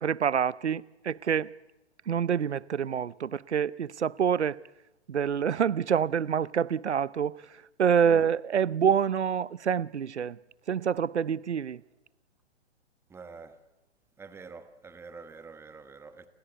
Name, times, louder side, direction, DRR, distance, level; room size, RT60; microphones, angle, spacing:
voice 1, 0.0-1.5 2.1-4.6 5.1-7.3 7.8-10.4 10.7-11.8, right 8 dB, 75° right, 0.8 m, -26 dB
voice 2, 13.1-13.6 14.2-16.3, right 4 dB, 5° right, 1.3 m, -47 dB
29.5 x 22.0 x 8.1 m
figure-of-eight pair, 130°, 34 cm